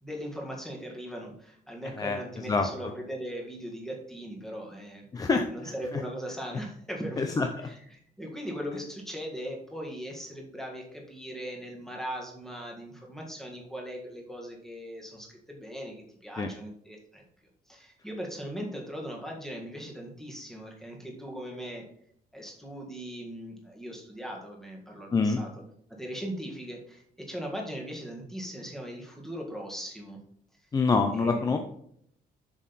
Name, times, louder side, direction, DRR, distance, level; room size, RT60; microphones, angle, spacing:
voice 1, 0.0-7.4 7.6-7.8 8.2-17.2 17.7-21.8 22.3-25.5 25.9-30.2 31.1-31.6, equal, 5° left, -1 dB, 1.7 m, -39 dB
voice 2, 2.0-2.7 5.1-6.0 7.2-7.5 16.4-16.5 25.1-25.4 30.7-31.6, left 4 dB, 20° left, 5 dB, 0.5 m, -26 dB
7.5 x 6.4 x 4.1 m, 0.69 s
cardioid pair, 155°, 16 cm